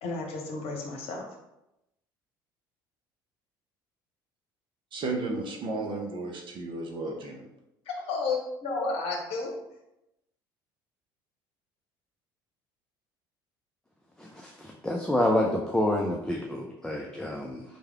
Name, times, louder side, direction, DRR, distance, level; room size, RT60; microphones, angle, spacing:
voice 1, 0.0-1.3 7.9-9.6, left 3 dB, 55° left, 1 dB, 1.0 m, -32 dB
voice 2, 4.9-7.4, right 2 dB, 45° right, 2 dB, 0.9 m, -33 dB
voice 3, 14.2-17.6, left 1 dB, 5° left, -1 dB, 0.6 m, -28 dB
4.3 x 3.4 x 3.5 m, 0.90 s
figure-of-eight pair, 60°, 12 cm